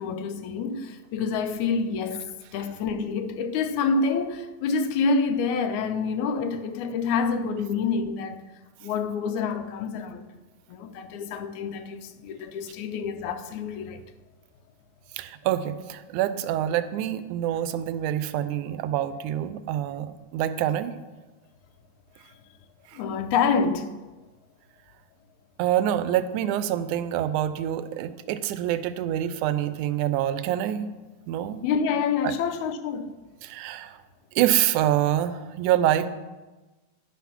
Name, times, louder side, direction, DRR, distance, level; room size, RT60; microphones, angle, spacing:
voice 1, 0.0-2.3 2.5-8.5 8.8-10.2 10.7-14.0 22.9-23.9 31.6-33.1, left 5 dB, 80° left, 1.9 m, -27 dB
voice 2, 15.2-21.0 25.6-30.9 31.3-31.6 32.2-32.3 33.4-34.0 34.4-36.1, right 11 dB, 80° right, 2.0 m, -26 dB
10.5 x 5.9 x 5.8 m
omnidirectional pair, 3.6 m